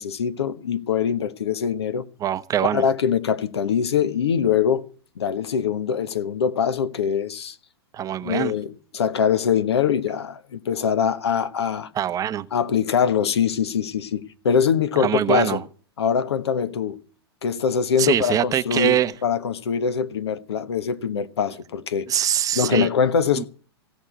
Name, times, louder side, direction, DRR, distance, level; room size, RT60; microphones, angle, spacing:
voice 1, 0.0-2.1 2.7-4.9 5.2-7.6 8.2-11.9 12.5-15.6 16.0-17.0 17.4-22.1 22.5-23.4, left 7 dB, 80° left, 1.2 m, -23 dB
voice 2, 2.2-2.8 7.9-8.5 11.9-12.5 15.0-15.6 18.0-19.1 22.1-22.9 23.4-23.5, right 10 dB, 25° right, 0.8 m, -23 dB
16.0 x 6.3 x 9.9 m
hypercardioid pair, 115°, 14 cm